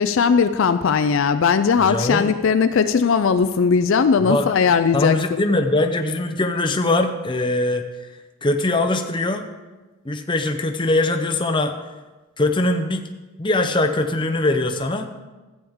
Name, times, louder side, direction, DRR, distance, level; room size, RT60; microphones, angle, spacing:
voice 1, 0.0-5.5, left 6 dB, 60° left, 10 dB, 0.4 m, -18 dB
voice 2, 1.8-2.4 4.2-4.6 4.9-7.8 8.4-9.5 10.0-11.7 12.4-13.1 13.4-15.1, left 2 dB, 20° left, 6 dB, 0.7 m, -21 dB
13.5 x 8.7 x 3.6 m, 1.2 s
head